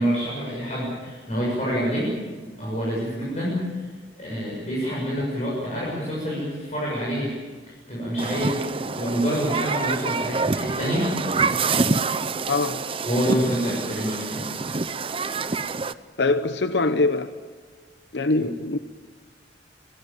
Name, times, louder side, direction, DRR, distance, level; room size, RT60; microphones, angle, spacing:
voice 1, 0.0-2.2 2.6-3.9 4.2-7.3 7.9-11.1 13.1-14.6, equal, 40° left, -6 dB, 7.0 m, -27 dB
Human group actions, 8.2-15.9, right 4 dB, 30° right, 0.6 m, -26 dB
voice 2, 12.5-12.8 16.2-17.3 18.1-18.8, left 3 dB, 75° left, 10 dB, 0.8 m, -23 dB
26.0 x 18.0 x 8.9 m, 1.5 s
head